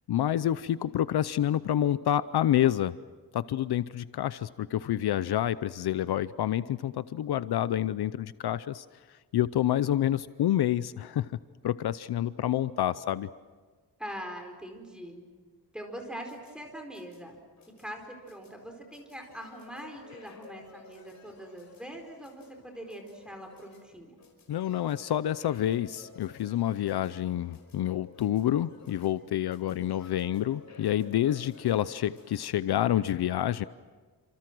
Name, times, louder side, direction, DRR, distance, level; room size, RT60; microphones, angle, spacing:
voice 1, 0.1-2.9 3.3-8.8 9.3-11.3 11.6-13.3 24.5-33.6, left 11 dB, 70° left, 15 dB, 0.7 m, -28 dB
voice 2, 14.0-15.2 15.7-17.4 17.8-24.2 29.6-29.9, equal, ahead, 3 dB, 4.6 m, -43 dB
sound 1, 16.0-32.4, left 4 dB, 45° left, 5.3 m, -54 dB
29.0 x 27.0 x 6.2 m, 1.4 s
wide cardioid pair, 160°, 40 cm